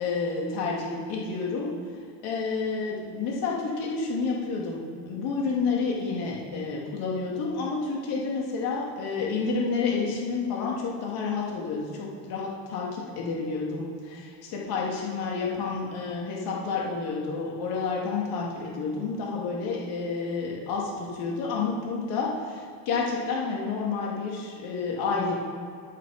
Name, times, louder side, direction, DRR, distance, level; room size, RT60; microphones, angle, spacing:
voice 1, 0.0-1.7 2.2-25.3, left 4 dB, 55° left, -2 dB, 2.8 m, -30 dB
10.5 x 8.3 x 5.1 m, 2.3 s
cardioid pair, 145°, 44 cm